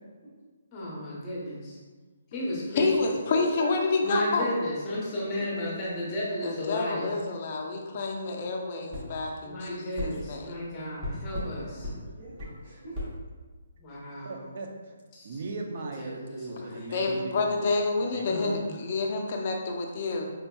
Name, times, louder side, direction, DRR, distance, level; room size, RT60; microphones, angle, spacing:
voice 1, 0.7-1.8 2.3-2.9 4.0-7.1 9.5-11.9 13.8-14.4 15.1-15.3 16.0-16.7 18.2-18.7, left 1 dB, 15° left, -5 dB, 0.8 m, -34 dB
voice 2, 2.8-4.5 6.4-10.6 16.9-20.3, left 3 dB, 35° left, 1 dB, 0.4 m, -28 dB
voice 3, 3.3-3.7 4.4-5.2 5.6-5.7 11.1-13.0, right 2 dB, 65° right, -10 dB, 1.2 m, -42 dB
sound 1, 8.9-9.1 10.0-10.1 11.0-11.5 11.8-12.0 12.4-12.5 12.9-13.1, left 1 dB, 20° right, 0.9 m, -34 dB
voice 4, 14.2-15.0 15.2-17.7 18.1-18.2, right 3 dB, 45° right, 3 dB, 0.4 m, -38 dB
4.3 x 2.7 x 2.3 m, 1.4 s
hypercardioid pair, 170°, 0 cm